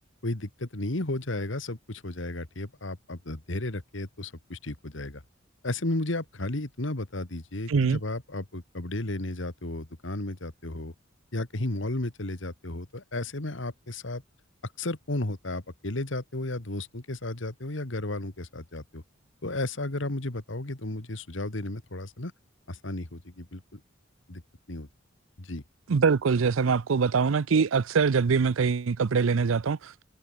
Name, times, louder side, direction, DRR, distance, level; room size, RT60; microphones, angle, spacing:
voice 1, 0.2-5.2 5.6-10.9 11.3-14.2 14.8-19.0 19.4-22.3 22.7-23.8 24.3-24.4 24.7-24.9 25.4-25.6, left 2 dB, 70° left, 2.0 m, -33 dB
voice 2, 7.7-8.0 25.9-30.0, right 5 dB, 90° right, 0.5 m, -23 dB
head